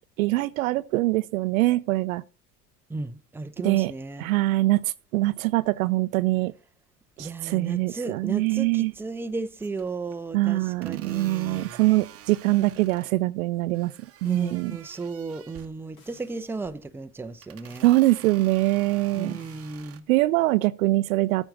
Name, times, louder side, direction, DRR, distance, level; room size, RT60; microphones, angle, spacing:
voice 1, 0.2-2.2 3.6-3.9 4.2-6.5 7.2-8.9 10.3-13.9 14.2-14.7 17.8-19.4 20.1-21.5, right 18 dB, 60° right, 0.6 m, -23 dB
voice 2, 2.9-4.3 7.2-11.7 14.2-17.9 19.1-20.0, right 3 dB, 5° right, 0.7 m, -34 dB
sound 1, 8.9-9.3 9.6-10.2 10.8-13.2 13.7-15.8 16.5-16.9 17.4-20.0, right 9 dB, 30° right, 1.0 m, -48 dB
sound 2, 14.3-15.0 16.0-16.7 17.7-18.3 19.4-19.7, left 1 dB, 65° left, 4.1 m, -57 dB
13.5 x 5.3 x 6.0 m
figure-of-eight pair, 65°, 46 cm